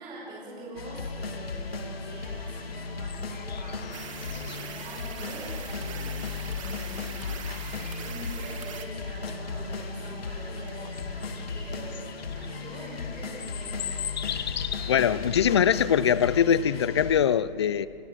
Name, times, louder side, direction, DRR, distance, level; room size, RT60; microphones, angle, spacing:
voice 1, 0.0-7.5 8.0-12.1 12.4-13.8, right 1 dB, 15° right, 5.1 m, -43 dB
sound 1, 0.8-17.2, left 4 dB, 75° left, 2.9 m, -36 dB
sound 2, 1.5-16.5, left 9 dB, 45° left, 1.3 m, -41 dB
sound 3, 3.9-8.9, right 9 dB, 35° right, 1.3 m, -42 dB
voice 2, 14.9-17.9, left 8 dB, 30° left, 0.5 m, -22 dB
29.0 x 21.5 x 6.4 m
hypercardioid pair, 160°, 30 cm